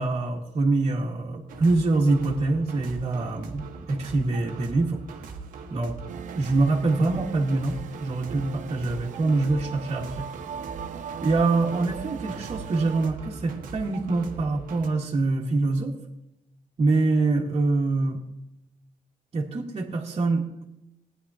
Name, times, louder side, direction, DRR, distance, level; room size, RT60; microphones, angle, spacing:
voice 1, 0.0-5.3 5.7-6.0 6.3-10.3 11.2-15.9 16.8-18.2 19.3-20.6, right 3 dB, 45° right, -4 dB, 1.8 m, -25 dB
sound 1, 1.5-14.9, right 4 dB, 85° right, 1.3 m, -41 dB
sound 2, 6.1-13.1, right 8 dB, 65° right, 0.6 m, -39 dB
17.0 x 10.0 x 2.8 m, 0.87 s
cardioid pair, 105°, 14 cm